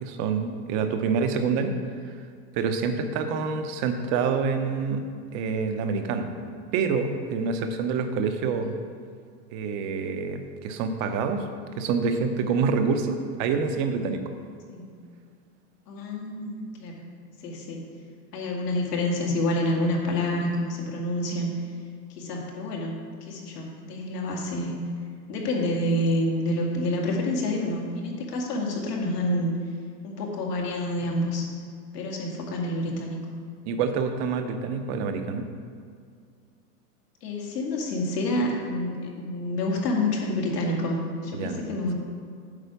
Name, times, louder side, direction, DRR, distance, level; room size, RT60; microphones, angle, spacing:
voice 1, 0.0-1.7 2.6-5.0 5.3-6.3 6.7-8.7 9.5-11.4 11.8-14.2 33.7-35.5 41.3-41.6, right 5 dB, 35° right, 7 dB, 0.8 m, -27 dB
voice 2, 15.9-17.1 17.4-18.0 18.3-21.5 22.2-23.0 23.3-24.8 25.3-29.5 30.0-31.5 31.9-33.2 37.2-41.9, left 1 dB, 75° left, -1 dB, 2.2 m, -28 dB
8.3 x 4.9 x 6.8 m, 2.2 s
hypercardioid pair, 130°, 47 cm